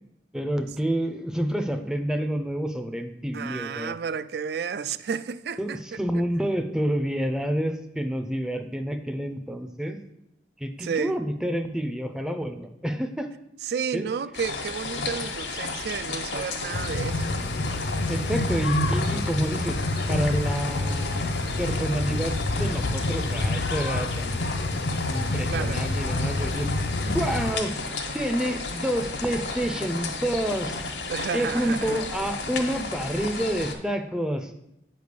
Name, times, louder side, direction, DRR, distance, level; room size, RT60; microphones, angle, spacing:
voice 1, 0.3-3.9 5.6-10.0 10.6-13.3 13.9-14.1 18.1-19.8 20.1-21.3 21.6-24.8 25.1-26.7 27.0-27.7 28.1-30.8 31.3-34.5, equal, 5° right, 0.5 m, -28 dB
voice 2, 3.3-6.2 10.8-11.2 13.6-17.4 25.5-25.8 31.1-32.0, right 6 dB, 60° right, 0.3 m, -32 dB
sound 1, 14.3-33.7, left 3 dB, 85° left, 1.2 m, -33 dB
sound 2, 16.7-27.5, left 2 dB, 60° left, 0.5 m, -28 dB
8.8 x 3.4 x 6.6 m
head